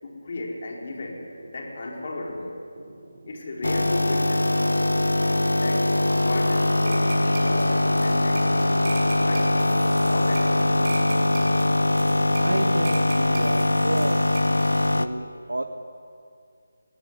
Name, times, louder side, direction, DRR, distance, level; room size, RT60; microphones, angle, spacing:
voice 1, 0.0-1.2 1.5-2.6 3.3-4.9 5.5-7.1 7.4-8.7 9.0-10.8, left 2 dB, 45° left, -1 dB, 4.6 m, -35 dB
sound 1, 1.2-8.1, right 2 dB, 55° right, 5.6 m, -48 dB
sound 2, 3.6-15.1, left 1 dB, 85° left, 1.1 m, -22 dB
sound 3, 6.9-14.9, right 3 dB, 30° right, 7.5 m, -40 dB
voice 2, 12.4-14.2 14.9-15.6, right 1 dB, 80° right, 5 dB, 1.5 m, -30 dB
19.5 x 18.5 x 9.6 m, 2.3 s
figure-of-eight pair, 160°, 0 cm